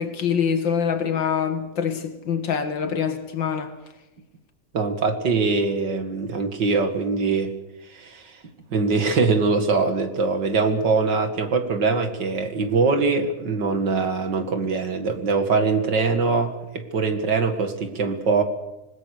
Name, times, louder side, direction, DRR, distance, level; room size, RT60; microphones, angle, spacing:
voice 1, 0.0-3.7, left 7 dB, 85° left, 2.5 m, -25 dB
voice 2, 4.7-7.5 7.9-8.4 8.7-18.4, right 4 dB, 70° right, 2.7 m, -22 dB
26.5 x 20.5 x 6.6 m
omnidirectional pair, 2.0 m